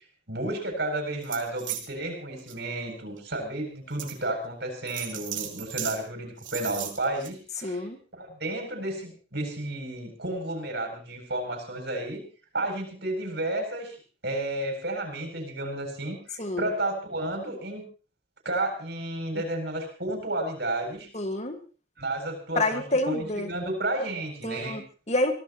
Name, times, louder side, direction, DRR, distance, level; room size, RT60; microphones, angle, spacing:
voice 1, 0.3-7.8 8.1-12.2 12.5-14.0 14.2-17.8 18.4-21.1 22.0-24.8, right 1 dB, 60° right, 4 dB, 7.9 m, -32 dB
sound 1, 1.2-1.9 2.4-2.5 3.2-3.3 4.0-4.2 4.9-6.0 6.4-7.3, right 11 dB, 85° right, 3.4 m, -35 dB
voice 2, 7.6-8.0 16.4-16.7 21.1-21.6 22.6-23.5 24.4-25.3, left 2 dB, 35° left, 6 dB, 1.8 m, -28 dB
25.5 x 18.0 x 3.1 m, 0.37 s
head